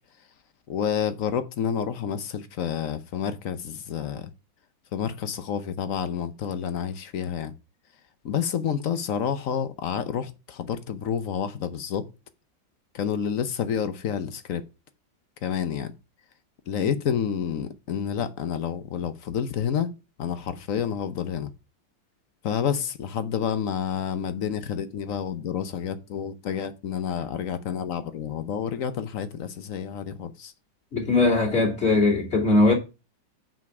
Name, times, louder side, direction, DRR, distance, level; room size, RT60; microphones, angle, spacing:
voice 1, 0.7-4.3 4.9-7.5 8.2-12.1 12.9-14.6 15.4-15.9 16.7-19.9 20.2-21.5 22.4-30.5, left 8 dB, 60° left, 0.9 m, -29 dB
voice 2, 30.9-32.7, left 2 dB, 35° left, 3.0 m, -20 dB
5.9 x 5.1 x 6.8 m
omnidirectional pair, 2.1 m